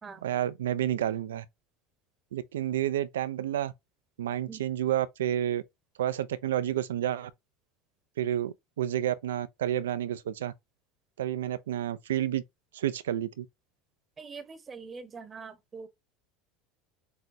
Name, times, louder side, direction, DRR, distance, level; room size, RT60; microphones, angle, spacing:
voice 1, 0.2-1.5 2.3-3.7 4.2-5.6 6.0-7.3 8.2-10.5 11.2-12.4 12.7-13.5, right 11 dB, 90° right, 0.4 m, -30 dB
voice 2, 14.2-15.9, right 5 dB, 25° right, 0.8 m, -43 dB
6.1 x 2.2 x 2.6 m
hypercardioid pair, 95°, 0 cm